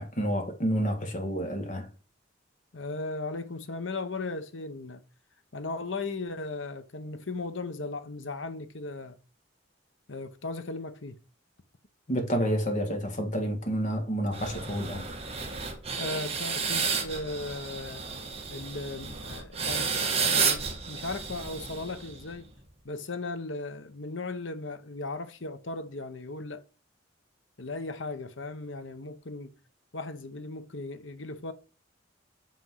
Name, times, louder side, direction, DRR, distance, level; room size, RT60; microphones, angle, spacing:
voice 1, 0.0-1.9 12.1-15.1, equal, 40° left, 2.0 m, -29 dB
voice 2, 2.7-5.0 5.5-9.2 10.1-11.2 16.0-18.0 18.5-22.5 22.8-26.6 27.6-29.5 29.9-31.5, left 3 dB, 75° left, 1.1 m, -37 dB
sound 1, 14.3-22.3, right 5 dB, 30° right, 1.6 m, -31 dB
7.0 x 6.0 x 4.7 m
head